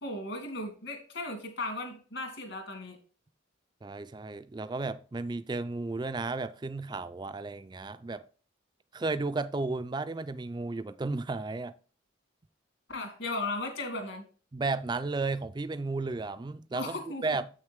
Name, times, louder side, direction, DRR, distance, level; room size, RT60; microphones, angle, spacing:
voice 1, 0.0-3.0 12.9-14.2 16.7-17.2, left 2 dB, 65° left, 2.5 m, -36 dB
voice 2, 3.8-8.2 8.9-11.7 14.5-17.5, right 3 dB, 20° right, 0.3 m, -33 dB
7.9 x 6.5 x 3.5 m
head